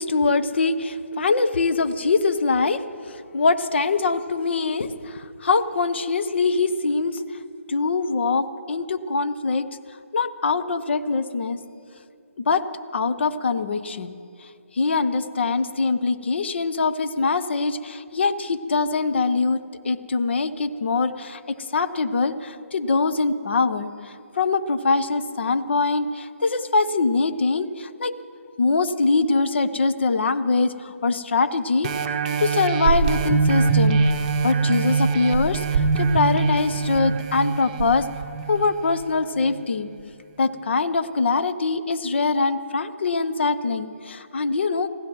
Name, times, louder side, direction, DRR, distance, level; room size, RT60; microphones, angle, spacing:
voice 1, 0.0-7.2 7.7-9.7 10.1-11.6 12.5-12.7 12.9-14.2 14.7-28.2 28.6-31.9 32.4-34.0 34.4-38.1 38.5-39.9 40.4-44.9, left 4 dB, 50° left, 11 dB, 0.8 m, -23 dB
sound 1, 31.8-39.0 39.6-39.7, right 5 dB, 30° right, 0.9 m, -23 dB
27.0 x 15.5 x 3.1 m, 2.4 s
figure-of-eight pair, 145°, 8 cm